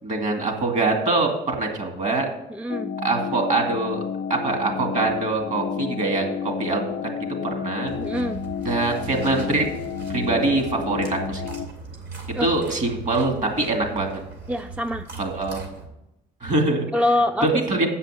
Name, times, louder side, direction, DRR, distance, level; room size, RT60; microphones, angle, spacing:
voice 1, 0.0-2.3 3.0-4.0 4.3-6.8 7.6-7.9 8.6-9.7 10.1-11.5 12.4-14.2 15.2-15.6 16.4-16.9 17.4-17.9, right 2 dB, 45° right, 3 dB, 2.4 m, -23 dB
voice 2, 2.5-2.9 8.0-8.4 12.4-12.5 14.5-15.1 16.9-17.5, left 1 dB, 5° right, 8 dB, 0.3 m, -24 dB
sound 1, 2.7-11.7, left 7 dB, 60° left, 0.5 m, -31 dB
sound 2, 7.8-15.9, right 4 dB, 70° right, 2.7 m, -38 dB
8.4 x 5.7 x 7.5 m, 0.87 s
cardioid pair, 110°, 17 cm